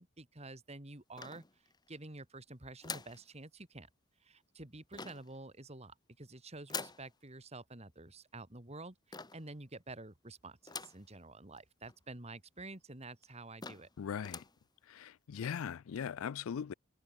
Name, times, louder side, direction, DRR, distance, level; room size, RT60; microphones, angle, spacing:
voice 1, 0.0-1.4 1.9-3.9 4.2-13.9, right 2 dB, 30° right, 2.4 m, -49 dB
sound 1, 1.2-1.9 2.8-3.2 4.9-5.4 6.7-7.1 9.1-9.5 10.7-11.1 11.6-11.7 11.9-12.0 12.7-12.8 13.2-13.3 13.6-13.9 14.2-14.6, left 5 dB, 20° left, 1.8 m, -44 dB
voice 2, 14.0-14.4 14.9-16.7, left 7 dB, 75° left, 0.4 m, -39 dB
head